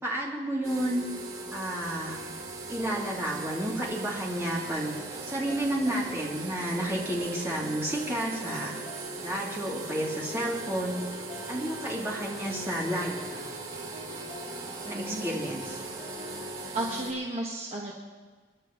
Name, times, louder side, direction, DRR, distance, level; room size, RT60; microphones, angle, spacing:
voice 1, 0.0-1.0 1.5-2.2 2.7-8.7 9.2-10.9 11.5-13.4 14.8-15.8, right 1 dB, 15° right, -5 dB, 3.0 m, -31 dB
sound 1, 0.6-17.1, right 3 dB, 85° right, 3.4 m, -40 dB
sound 2, 4.9-16.6, equal, 30° left, 2.6 m, -45 dB
voice 2, 14.9-15.4 16.7-17.9, right 1 dB, 35° right, -3 dB, 1.4 m, -33 dB
27.0 x 11.0 x 3.1 m, 1.5 s
head